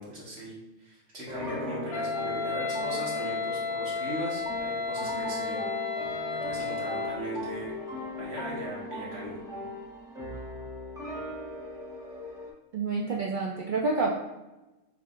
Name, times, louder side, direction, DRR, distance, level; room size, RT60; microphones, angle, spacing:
voice 1, 0.0-5.6 6.4-7.7 8.2-9.3, equal, 50° right, -6 dB, 1.8 m, -38 dB
sound 1, 1.3-12.5, left 1 dB, 5° right, 0.6 m, -38 dB
Wind instrument woodwind instrument, 1.9-7.3, left 4 dB, 60° left, 0.6 m, -32 dB
voice 2, 12.7-14.1, right 3 dB, 70° right, -1 dB, 0.4 m, -28 dB
6.6 x 2.8 x 2.4 m, 1.0 s
omnidirectional pair, 1.4 m